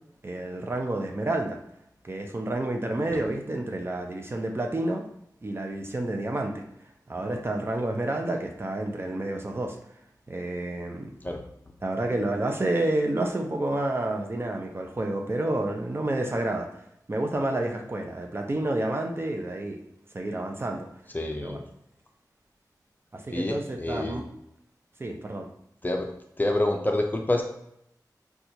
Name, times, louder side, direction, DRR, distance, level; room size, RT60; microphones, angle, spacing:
voice 1, 0.2-1.6 2.0-5.0 5.4-6.6 7.1-9.8 10.3-11.1 11.8-16.7 17.1-19.8 20.1-20.9 21.4-21.6 23.1-24.3 25.0-25.5, right 1 dB, 35° right, 3 dB, 0.5 m, -29 dB
voice 2, 21.1-21.6 23.3-24.2 25.8-26.1 26.4-27.4, left 1 dB, 25° left, 3 dB, 0.5 m, -27 dB
4.3 x 2.3 x 2.7 m, 0.77 s
wide cardioid pair, 75°, 7 cm